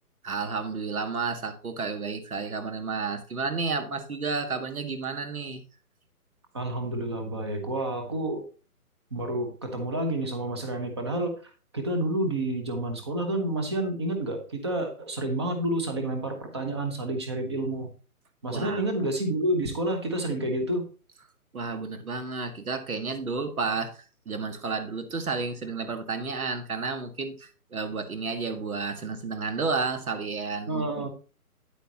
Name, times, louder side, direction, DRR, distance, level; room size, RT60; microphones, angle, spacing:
voice 1, 0.2-5.6 18.5-18.9 21.5-31.1, right 4 dB, 70° right, 8 dB, 2.0 m, -31 dB
voice 2, 6.5-8.5 9.1-11.3 11.7-17.9 18.4-20.9 30.7-31.1, right 1 dB, 20° right, 4 dB, 1.0 m, -29 dB
9.6 x 8.3 x 3.0 m, 0.35 s
hypercardioid pair, 170°, 45 cm